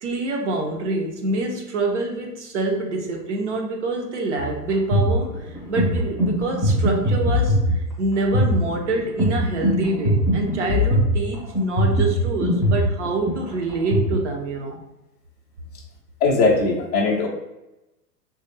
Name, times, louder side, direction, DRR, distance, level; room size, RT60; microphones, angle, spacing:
voice 1, 0.0-14.8, right 2 dB, 45° right, 1 dB, 0.8 m, -26 dB
sound 1, 4.4-14.1, equal, 5° right, 0.7 m, -22 dB
voice 2, 16.2-17.3, left 3 dB, 25° left, -2 dB, 0.5 m, -19 dB
3.1 x 2.6 x 4.0 m, 0.96 s
figure-of-eight pair, 110°, 49 cm